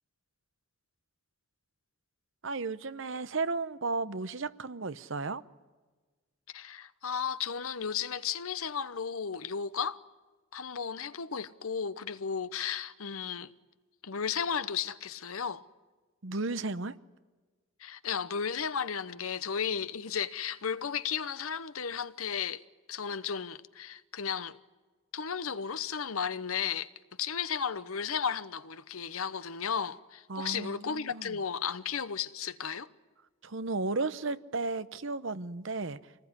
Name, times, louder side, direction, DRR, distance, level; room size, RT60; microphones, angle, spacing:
voice 1, 2.4-5.4 16.2-17.0 30.3-31.4 33.4-36.0, right 3 dB, 60° right, 0.9 m, -34 dB
voice 2, 6.5-10.0 10.5-13.5 14.0-15.6 17.8-22.6 22.9-24.6 25.1-26.9 27.2-32.9, left 7 dB, 80° left, 0.9 m, -34 dB
26.5 x 19.5 x 9.8 m
head